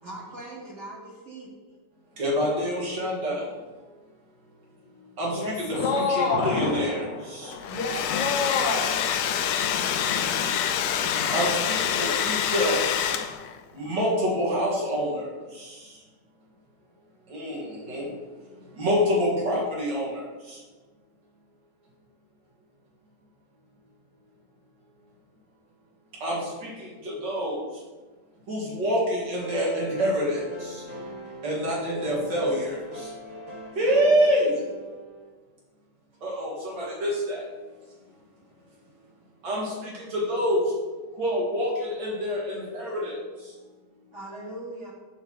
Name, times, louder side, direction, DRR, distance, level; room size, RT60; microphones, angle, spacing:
voice 1, 0.0-1.5 44.1-44.9, right 1 dB, 40° right, -4 dB, 1.9 m, -40 dB
voice 2, 2.2-3.4 5.2-7.5 11.3-12.8 13.7-15.8 17.3-18.1 18.8-20.6 26.2-27.6 28.5-30.8 31.4-33.1 33.8-34.5 36.2-37.4 39.4-40.6 41.2-43.2, equal, 75° right, -4 dB, 2.6 m, -27 dB
voice 3, 5.3-6.6 7.7-8.9, left 4 dB, 35° left, 0 dB, 1.0 m, -27 dB
Thunder, 5.7-13.5 13.8-13.9 14.3-14.4, left 4 dB, 60° left, 0.9 m, -36 dB
Domestic sounds home sounds, 7.5-13.6, left 9 dB, 90° left, 1.3 m, -26 dB
sound 1, 29.4-35.3, right 1 dB, 55° right, 2.6 m, -41 dB
5.6 x 4.4 x 6.1 m, 1.3 s
omnidirectional pair, 1.9 m